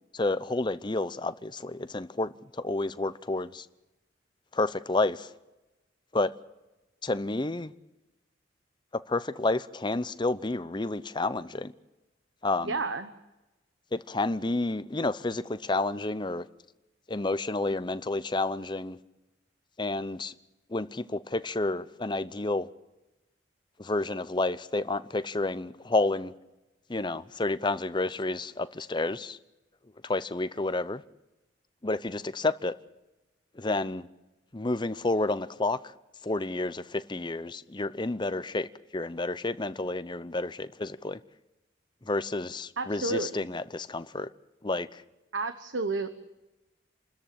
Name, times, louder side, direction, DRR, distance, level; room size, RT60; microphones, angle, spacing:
voice 1, 0.1-3.7 4.5-5.3 6.1-6.3 7.0-7.7 8.9-11.7 12.4-12.8 13.9-16.4 17.1-19.0 19.8-20.3 20.7-22.7 23.8-26.3 26.9-29.4 30.0-31.0 31.8-32.7 33.6-34.1 34.5-35.9 36.2-41.2 42.0-44.3 44.6-45.0, left 2 dB, 25° left, 0.7 m, -30 dB
voice 2, 12.6-13.1 42.8-43.5 45.3-46.1, right 3 dB, 85° right, 1.2 m, -31 dB
28.0 x 13.5 x 8.7 m
head